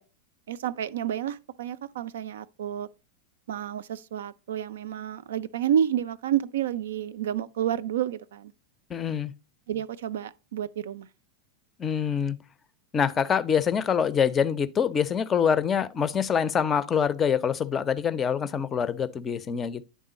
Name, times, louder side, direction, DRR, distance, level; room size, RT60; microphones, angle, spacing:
voice 1, 0.5-2.9 3.5-8.5 9.7-11.1, right 10 dB, 60° right, 0.3 m, -30 dB
voice 2, 8.9-9.3 11.8-12.4 12.9-19.8, left 7 dB, 20° left, 0.5 m, -25 dB
9.3 x 3.6 x 4.0 m
figure-of-eight pair, 90°, 0 cm